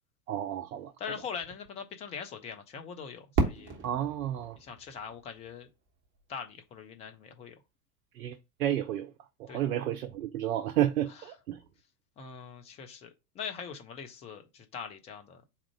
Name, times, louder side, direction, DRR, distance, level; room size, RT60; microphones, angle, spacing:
voice 1, 0.3-0.9 3.8-4.6 8.2-8.3 8.6-9.1 9.5-11.6, right 11 dB, 60° right, 0.7 m, -31 dB
voice 2, 1.0-3.7 4.6-5.7 6.3-7.6 9.5-9.6 11.1-11.3 12.2-15.4, left 6 dB, 15° left, 0.4 m, -42 dB
Fireworks, 3.4-6.2, right 3 dB, 25° right, 1.1 m, -34 dB
4.2 x 2.4 x 4.7 m
figure-of-eight pair, 90°, 48 cm